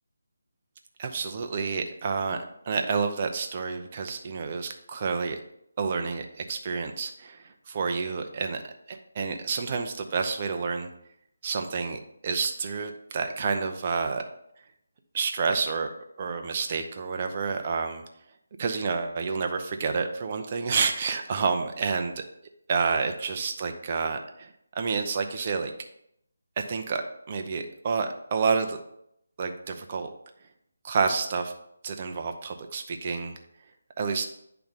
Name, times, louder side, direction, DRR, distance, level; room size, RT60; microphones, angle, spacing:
voice 1, 1.0-2.4 2.7-5.4 5.8-8.6 8.9-10.9 11.4-14.2 15.1-15.9 16.2-18.0 18.6-22.2 22.7-25.7 26.6-27.0 27.3-28.8 29.4-30.1 30.8-31.5 31.8-33.3 34.0-34.2, right 5 dB, 35° right, 5 dB, 0.7 m, -29 dB
10.0 x 3.4 x 4.1 m, 0.76 s
figure-of-eight pair, 160°, 0 cm